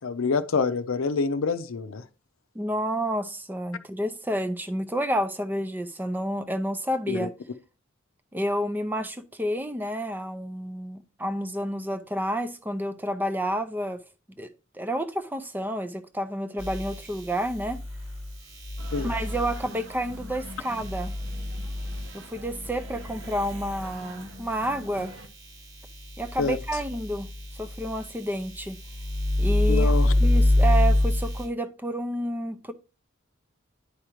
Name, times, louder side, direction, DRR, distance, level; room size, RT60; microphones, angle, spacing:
voice 1, 0.0-2.0 7.1-7.3 18.9-19.1 26.4-26.6 29.7-30.1, left 4 dB, 80° left, 0.6 m, -26 dB
voice 2, 2.5-7.3 8.3-14.0 14.4-17.8 19.0-21.1 22.1-25.1 26.2-27.3 27.6-28.8 29.4-32.7, equal, 10° right, 0.5 m, -30 dB
sound 1, 16.6-24.9 25.4-31.4, left 1 dB, 85° right, 3.4 m, -27 dB
sound 2, 18.8-25.3, right 1 dB, 60° right, 1.0 m, -45 dB
9.9 x 4.9 x 2.9 m
head